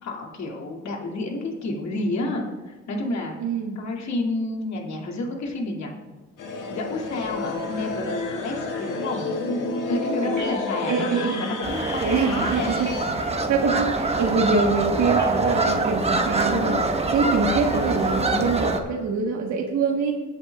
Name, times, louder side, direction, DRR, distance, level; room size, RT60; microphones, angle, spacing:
voice 1, 0.0-3.3 3.8-5.9 6.7-9.2 9.9-11.1 11.4-12.7, left 2 dB, 65° left, 0 dB, 2.4 m, -30 dB
voice 2, 3.4-3.8 10.2-10.5 10.8-11.4 12.0-20.1, right 4 dB, 70° right, 0 dB, 1.3 m, -25 dB
sound 1, 6.4-13.0, left 3 dB, 85° left, 1.8 m, -30 dB
sound 2, 10.3-11.2 12.8-13.7 15.2-15.8 17.7-18.1, left 3 dB, 35° left, 1.7 m, -39 dB
sound 3, 11.6-18.8, right 2 dB, 20° right, 1.2 m, -24 dB
21.5 x 8.1 x 2.3 m, 1.3 s
cardioid pair, 90°, 30 cm